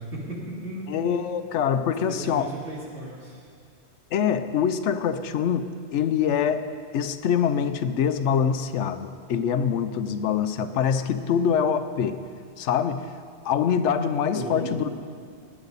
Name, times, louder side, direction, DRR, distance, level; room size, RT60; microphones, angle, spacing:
voice 1, 0.0-0.9 2.1-3.4 14.3-14.8, right 1 dB, 70° right, -5 dB, 3.2 m, -35 dB
voice 2, 0.9-2.5 4.1-6.7 6.9-12.2 12.6-13.1 13.4-14.9, left 7 dB, 80° left, 10 dB, 1.0 m, -24 dB
18.5 x 9.9 x 4.1 m, 2.3 s
omnidirectional pair, 1.2 m